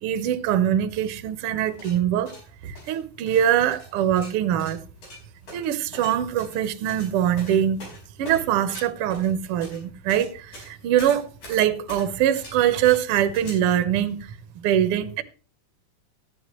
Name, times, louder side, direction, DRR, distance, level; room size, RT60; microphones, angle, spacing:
voice 1, 0.0-2.3 2.6-4.8 5.5-7.8 8.2-14.2 14.5-15.2, right 10 dB, 70° right, 1.4 m, -23 dB
sound 1, 1.6-13.5, left 1 dB, 70° left, 6.3 m, -44 dB
14.0 x 9.7 x 3.0 m
omnidirectional pair, 3.6 m